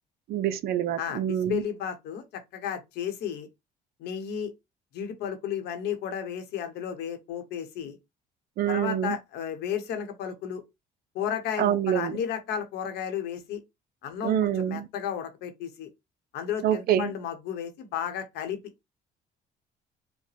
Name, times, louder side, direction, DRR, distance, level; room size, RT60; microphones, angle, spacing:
voice 1, 0.3-1.6 8.6-9.2 11.6-12.2 14.2-14.9 16.6-17.1, right 10 dB, 65° right, 0.5 m, -26 dB
voice 2, 1.0-3.5 4.0-4.5 4.9-8.0 8.7-10.6 11.1-13.6 14.0-15.9 16.3-18.6, left 8 dB, 80° left, 1.1 m, -33 dB
5.2 x 2.2 x 3.3 m
cardioid pair, 110°, 17 cm